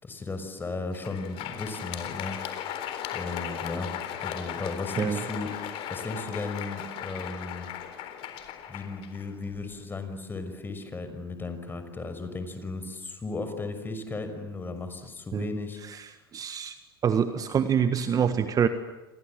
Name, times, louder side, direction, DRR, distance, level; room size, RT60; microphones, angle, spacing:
voice 1, 0.0-2.8 3.1-3.9 4.2-7.7 8.7-15.8, left 3 dB, 15° left, 8 dB, 5.9 m, -35 dB
Crowd, 0.8-9.8, left 10 dB, 50° left, 4.0 m, -37 dB
voice 2, 16.3-16.7 17.0-18.7, right 8 dB, 30° right, 10 dB, 1.6 m, -25 dB
29.5 x 26.5 x 7.6 m, 1.0 s
hypercardioid pair, 85°, 12 cm